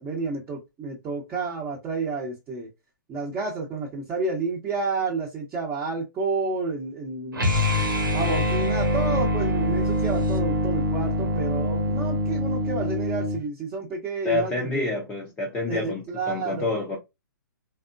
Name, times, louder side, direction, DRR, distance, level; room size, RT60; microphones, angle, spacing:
voice 1, 0.0-2.7 3.1-7.5 8.1-14.9 15.7-16.7, right 4 dB, 20° right, 0.8 m, -30 dB
sound 1, 7.3-13.4, left 1 dB, 85° right, 1.2 m, -24 dB
voice 2, 14.2-17.0, left 3 dB, 10° left, 0.6 m, -28 dB
3.5 x 2.0 x 2.5 m
figure-of-eight pair, 130°, 11 cm